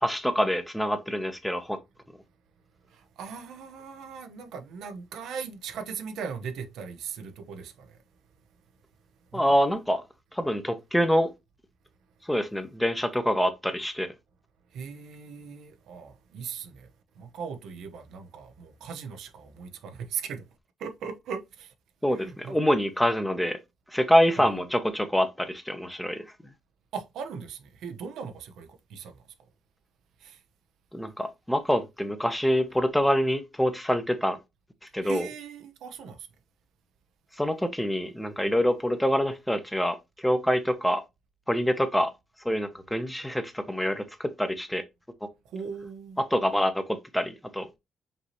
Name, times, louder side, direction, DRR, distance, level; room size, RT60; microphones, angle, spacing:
voice 1, 0.0-1.8 9.3-10.0 10.3-11.3 12.2-14.1 22.0-23.6 23.9-26.3 30.9-34.4 34.9-35.3 37.4-41.0 41.5-42.1 42.4-44.8 46.3-47.7, equal, 5° left, 0.8 m, -26 dB
voice 2, 2.9-8.0 9.3-9.6 14.7-16.9 17.2-20.4 20.8-21.7 22.1-22.6 24.4-24.6 26.9-29.2 30.2-30.4 35.0-36.3 45.5-46.2, right 6 dB, 80° right, 0.7 m, -39 dB
5.3 x 2.8 x 3.0 m
cardioid pair, 90°, 0 cm